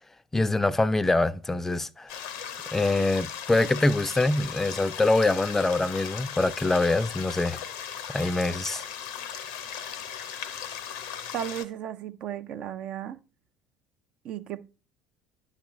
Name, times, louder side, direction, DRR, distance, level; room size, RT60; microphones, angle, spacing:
voice 1, 0.3-2.1 2.7-7.6 8.1-8.8, left 2 dB, 15° left, 0.4 m, -24 dB
sound 1, 2.1-11.6, left 8 dB, 75° left, 0.7 m, -38 dB
voice 2, 11.3-13.2 14.2-14.6, right 10 dB, 55° right, 0.5 m, -34 dB
10.0 x 5.8 x 3.0 m
hypercardioid pair, 65°, 2 cm